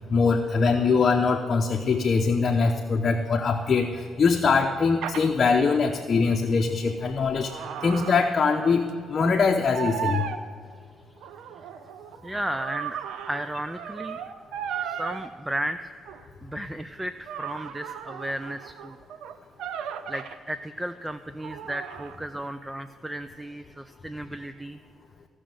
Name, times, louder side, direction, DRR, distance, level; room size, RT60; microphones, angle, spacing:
voice 1, 0.1-7.5 7.8-10.2, left 4 dB, 45° left, 3 dB, 0.8 m, -22 dB
sound 1, 5.0-5.3 6.8-8.9 9.2-9.5 9.7-10.4 11.2-15.3 16.1-16.2 17.3-20.4 21.4-22.3, right 8 dB, 80° right, 0.7 m, -36 dB
voice 2, 12.2-14.2 14.8-15.9 16.4-19.0 20.1-24.8, right 1 dB, 10° right, 11 dB, 0.4 m, -34 dB
16.0 x 6.3 x 7.7 m, 2.1 s
cardioid pair, 90°, 0 cm